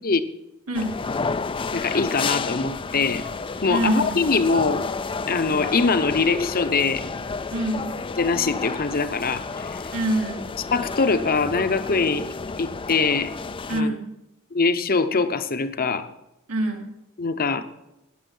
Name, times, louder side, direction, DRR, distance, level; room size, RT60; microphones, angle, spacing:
sound 1, 0.7-13.8, left 4 dB, 25° left, 0.4 m, -31 dB
voice 1, 0.7-1.0 3.7-4.2 7.5-7.9 9.9-10.5 13.7-14.1 16.5-16.9, right 1 dB, 80° right, 2 dB, 2.3 m, -25 dB
voice 2, 1.7-3.3 3.6-4.8 5.3-7.0 8.2-9.8 10.7-12.3 12.6-13.3 13.7-14.0 14.5-16.1 17.2-17.6, left 4 dB, 45° left, 10 dB, 0.9 m, -23 dB
19.5 x 7.2 x 5.5 m, 0.93 s
head